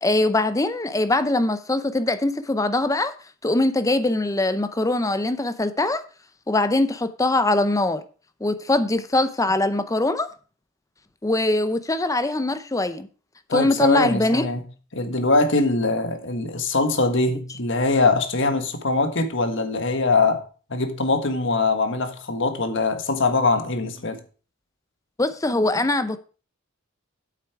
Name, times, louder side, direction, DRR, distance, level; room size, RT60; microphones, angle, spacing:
voice 1, 0.0-3.1 3.4-6.0 6.5-8.0 8.4-10.3 11.2-13.1 13.5-14.5 25.2-26.2, left 2 dB, 15° left, 0.6 m, -22 dB
voice 2, 13.5-14.6 14.9-20.4 20.7-24.2, left 3 dB, 60° left, 1.5 m, -22 dB
8.4 x 8.1 x 4.7 m
head